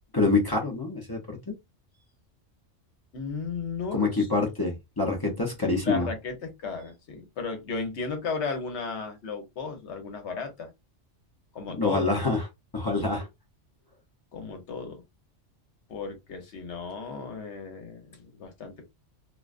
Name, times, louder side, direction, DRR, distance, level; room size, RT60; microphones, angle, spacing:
voice 1, 0.1-1.5 3.9-6.1 11.7-12.5 12.7-13.3, left 3 dB, 25° left, 0.5 m, -26 dB
voice 2, 3.1-4.3 5.8-10.7 11.5-12.1 14.3-15.0 15.9-18.7, left 4 dB, 70° left, 1.1 m, -35 dB
2.5 x 2.2 x 2.4 m
omnidirectional pair, 1.2 m